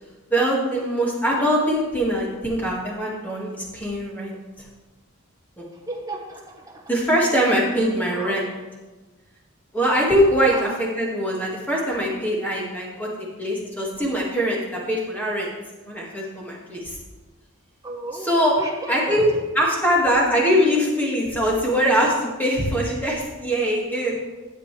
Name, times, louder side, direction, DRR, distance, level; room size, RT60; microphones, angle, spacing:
voice 1, 0.3-4.4 5.6-5.7 6.9-8.5 9.7-15.5 15.8-17.0 18.1-18.6 18.9-24.2, equal, 10° left, -4 dB, 2.0 m, -22 dB
voice 2, 5.9-6.8 8.1-8.4 10.5-10.6 17.8-19.2, right 2 dB, 15° right, 1 dB, 1.2 m, -34 dB
12.5 x 8.1 x 3.3 m, 1.2 s
head